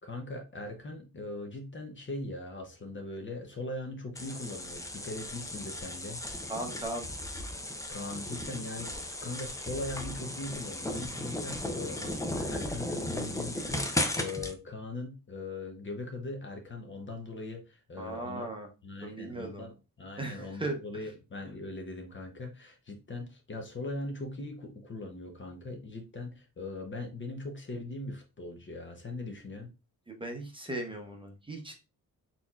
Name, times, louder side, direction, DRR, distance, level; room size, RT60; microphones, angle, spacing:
voice 1, 0.0-6.2 7.9-18.5 18.8-29.7, left 2 dB, 35° left, 4 dB, 0.8 m, -40 dB
sound 1, 4.2-14.5, left 1 dB, 10° left, 0.4 m, -36 dB
voice 2, 6.5-7.1 18.0-18.7 19.0-19.7 20.2-21.0 30.1-31.7, right 2 dB, 15° right, 2 dB, 0.8 m, -38 dB
4.2 x 4.2 x 2.3 m, 0.29 s
wide cardioid pair, 165°, 34 cm